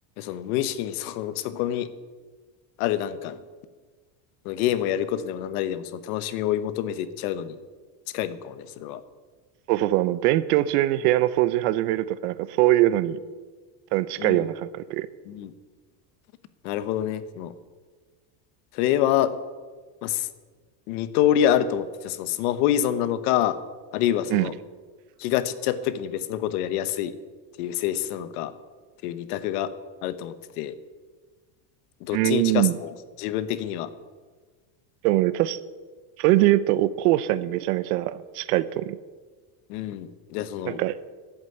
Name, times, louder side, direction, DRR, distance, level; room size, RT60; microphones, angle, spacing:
voice 1, 0.2-1.9 2.8-3.4 4.4-7.6 8.1-9.0 14.2-14.5 15.3-15.5 16.6-17.5 18.7-19.3 20.0-20.3 20.9-23.6 23.9-24.5 25.2-27.1 27.6-28.5 29.0-29.7 30.0-30.8 32.0-33.9 39.7-40.8, left 11 dB, 75° left, 13 dB, 1.2 m, -26 dB
voice 2, 9.7-13.2 13.9-15.1 24.3-24.5 32.1-32.8 35.0-35.6 36.2-39.0 40.7-41.0, right 15 dB, 85° right, 17 dB, 0.9 m, -22 dB
11.5 x 8.3 x 9.4 m, 1.4 s
cardioid pair, 180°, 45 cm